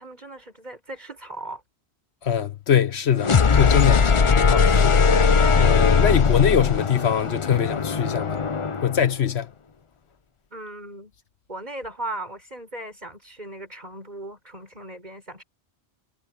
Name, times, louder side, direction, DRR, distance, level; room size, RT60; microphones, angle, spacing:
voice 1, 0.0-1.6 5.8-6.1 10.5-11.1 11.5-15.4, right 1 dB, 40° right, 6.2 m, -37 dB
voice 2, 2.2-8.4 8.8-9.5, left 8 dB, 75° left, 1.2 m, -23 dB
sound 1, 3.2-9.0, left 5 dB, 35° left, 0.6 m, -19 dB
omnidirectional pair, 1.1 m